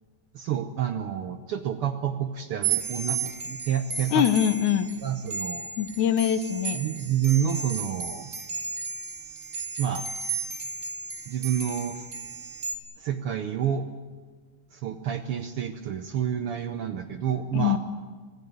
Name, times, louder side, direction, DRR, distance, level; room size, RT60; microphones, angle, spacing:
voice 1, 0.3-4.3 5.0-5.7 6.7-8.3 9.8-10.1 11.3-12.1 13.0-13.9 14.7-17.8, right 9 dB, 70° right, 9 dB, 1.3 m, -29 dB
sound 1, 2.6-12.7, right 6 dB, 30° right, 1.8 m, -34 dB
voice 2, 4.1-4.9 5.8-6.8 17.5-17.8, left 10 dB, 75° left, 12 dB, 2.3 m, -23 dB
26.0 x 16.5 x 9.4 m, 1.4 s
omnidirectional pair, 3.6 m